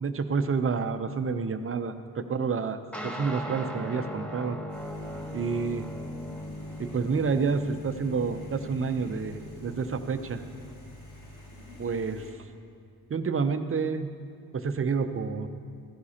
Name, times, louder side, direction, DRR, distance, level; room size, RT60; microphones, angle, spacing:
voice 1, 0.0-4.6 5.3-5.9 6.8-10.4 11.8-12.2 13.1-14.1 14.5-15.5, right 5 dB, 35° right, 9 dB, 0.7 m, -29 dB
sound 1, 2.9-10.7, equal, 5° left, 1.1 m, -39 dB
sound 2, 4.7-12.3, left 1 dB, 85° left, 2.6 m, -46 dB
14.0 x 11.5 x 2.9 m, 2.4 s
cardioid pair, 70°, 37 cm